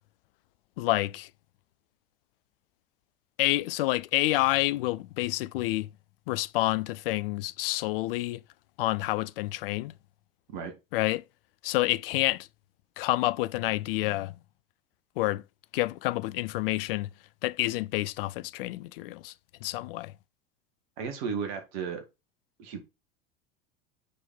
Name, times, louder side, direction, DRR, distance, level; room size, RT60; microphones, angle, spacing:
voice 1, 0.8-1.3 3.4-5.9 6.3-8.4 8.8-9.9 10.9-11.2 11.6-12.5 13.0-14.4 15.2-15.4 15.7-17.1 17.4-19.3 19.6-20.1, left 18 dB, 45° left, 0.5 m, -28 dB
voice 2, 21.0-22.0 22.6-22.8, right 6 dB, 50° right, 2.2 m, -34 dB
6.6 x 4.4 x 5.4 m
figure-of-eight pair, 80°, 40 cm